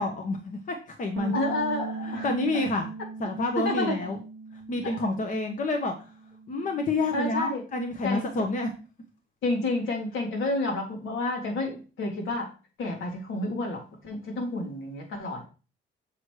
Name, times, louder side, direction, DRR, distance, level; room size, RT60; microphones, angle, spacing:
voice 1, 0.0-1.3 2.2-2.9 3.2-4.2 4.7-5.9 6.5-8.7, left 2 dB, 40° left, 4 dB, 0.9 m, -28 dB
sound 1, 1.2-5.7 6.0-7.4, right 5 dB, 70° right, 0.6 m, -39 dB
voice 2, 1.3-2.3 3.6-4.0 7.1-7.6 8.0-8.2 9.4-12.5 12.8-15.4, left 2 dB, 80° left, 0 dB, 1.9 m, -29 dB
6.6 x 3.1 x 4.7 m, 0.34 s
cardioid pair, 90°, 20 cm